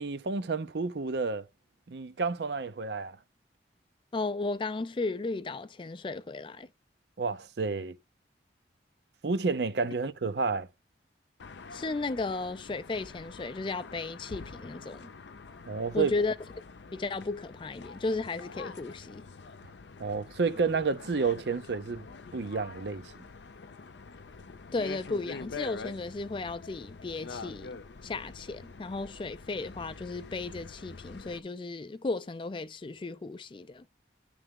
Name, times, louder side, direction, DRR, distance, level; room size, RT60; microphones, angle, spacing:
voice 1, 0.0-1.5 1.9-3.2 7.2-8.0 9.2-10.7 15.7-16.1 20.0-22.0 22.3-23.1, right 4 dB, 70° right, 0.6 m, -30 dB
voice 2, 4.1-6.7 11.7-15.1 15.9-16.4 16.9-19.2 24.7-27.8 28.0-33.9, left 3 dB, 30° left, 0.4 m, -34 dB
sound 1, 11.4-31.4, left 4 dB, 75° left, 0.6 m, -46 dB
9.8 x 3.4 x 3.6 m
head